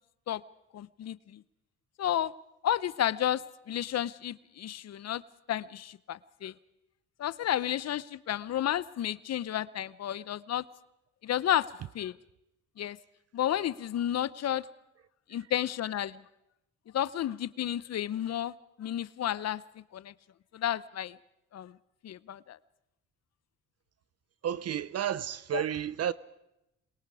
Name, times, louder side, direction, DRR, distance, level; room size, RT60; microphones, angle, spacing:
voice 1, 0.7-1.4 2.0-2.3 2.6-5.2 5.5-6.5 7.2-10.6 11.2-11.7 11.9-12.1 12.8-13.0 13.3-14.6 15.3-16.2 16.9-18.5 18.8-19.6 19.9-20.1 20.5-21.1 21.5-21.7 22.0-22.6 25.5-25.6, left 11 dB, 55° left, 0.8 m, -31 dB
voice 2, 24.4-26.1, right 10 dB, 55° right, 0.7 m, -31 dB
27.5 x 22.0 x 4.9 m
cardioid pair, 90°, 30 cm